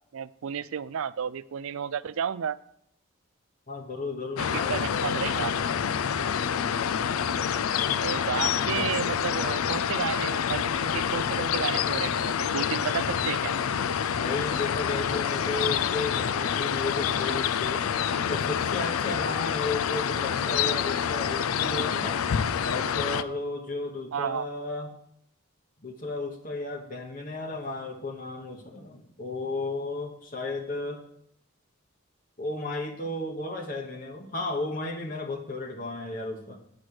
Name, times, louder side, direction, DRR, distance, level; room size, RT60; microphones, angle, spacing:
voice 1, 0.1-2.6 4.5-5.7 8.0-13.5 24.1-24.5, right 8 dB, 75° right, 18 dB, 0.4 m, -32 dB
voice 2, 3.7-5.2 14.1-17.9 18.3-22.2 22.6-24.9 25.8-31.0 32.4-36.6, left 2 dB, 40° left, 2 dB, 1.0 m, -34 dB
sound 1, 4.4-23.2, left 8 dB, 85° left, 0.4 m, -27 dB
8.6 x 6.2 x 6.3 m, 0.72 s
head